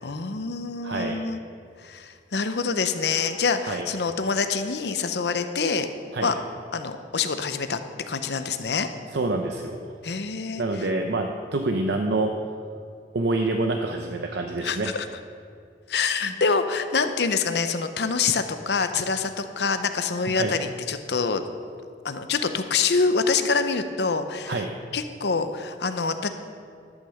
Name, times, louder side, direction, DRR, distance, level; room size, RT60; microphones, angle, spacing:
voice 1, 0.0-1.4 1.8-5.9 6.2-6.4 6.7-7.8 8.1-8.9 10.0-10.9 14.6-15.1 15.9-21.4 22.0-24.6 24.9-26.3, left 5 dB, 70° left, 9 dB, 0.7 m, -26 dB
voice 2, 0.8-1.2 3.7-3.8 6.1-6.3 9.1-9.9 10.6-12.3 13.1-14.9 16.2-16.3 20.3-20.5 24.5-24.7, right 2 dB, 75° right, 3 dB, 0.7 m, -26 dB
12.0 x 6.4 x 7.0 m, 2.4 s
head